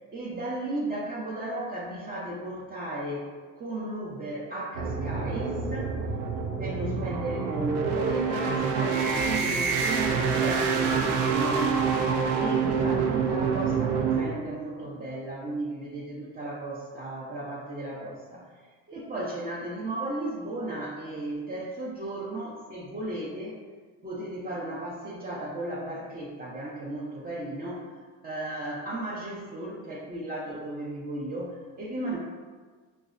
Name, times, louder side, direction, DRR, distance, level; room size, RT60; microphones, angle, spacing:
voice 1, 0.1-3.3 3.6-5.9 6.6-11.8 12.4-18.5 18.9-23.6 24.0-27.8 28.2-32.2, right 1 dB, 20° right, -5 dB, 0.6 m, -35 dB
sound 1, 4.7-14.2, right 5 dB, 70° right, 0.6 m, -26 dB
5.2 x 2.1 x 2.4 m, 1.5 s
supercardioid pair, 85°, 40 cm